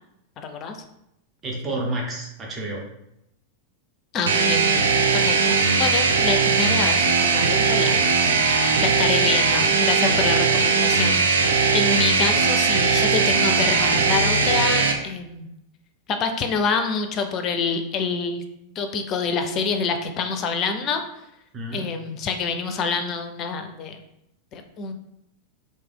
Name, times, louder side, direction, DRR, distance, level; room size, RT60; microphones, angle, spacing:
voice 1, 0.4-0.8 4.1-4.7 5.1-8.2 8.8-11.5 11.7-15.5 16.1-18.4 18.8-21.0 21.7-24.0 24.5-24.9, left 5 dB, 35° left, 6 dB, 0.5 m, -26 dB
voice 2, 1.4-2.9 10.0-10.7 11.9-12.0 12.3-12.4 21.5-21.9, right 1 dB, 25° right, -1 dB, 0.8 m, -31 dB
sound 1, 4.3-14.9, right 4 dB, 65° right, 0.4 m, -19 dB
3.2 x 2.7 x 3.7 m, 0.82 s
figure-of-eight pair, 90°, 0 cm